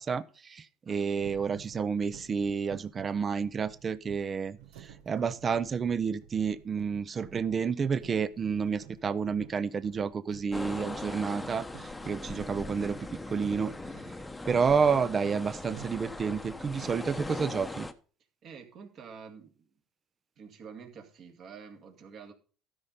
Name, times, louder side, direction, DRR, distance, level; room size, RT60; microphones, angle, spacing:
voice 1, 0.0-13.0 13.3-13.7 14.5-17.9, right 6 dB, 30° right, 0.5 m, -30 dB
voice 2, 0.9-1.4 18.4-19.7 20.4-22.3, right 6 dB, 50° right, 2.2 m, -48 dB
sound 1, 1.2-14.2 14.7-17.3, right 10 dB, 85° right, 1.2 m, -52 dB
sound 2, 10.5-17.9, left 2 dB, 10° left, 0.9 m, -40 dB
12.5 x 5.2 x 5.5 m
supercardioid pair, 100°, 0 cm